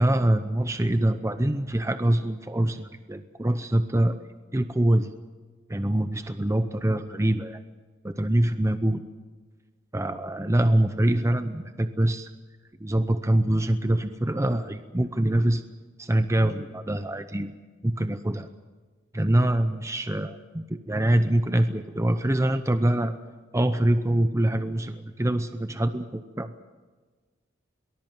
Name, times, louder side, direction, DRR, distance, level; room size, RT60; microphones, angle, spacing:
voice 1, 0.0-4.2 4.5-5.1 5.7-7.6 8.0-9.0 9.9-12.3 12.8-15.6 16.0-17.5 17.8-18.5 19.1-23.2 23.5-26.5, right 1 dB, 15° right, 9 dB, 0.7 m, -24 dB
23.0 x 19.5 x 7.5 m, 1.4 s
head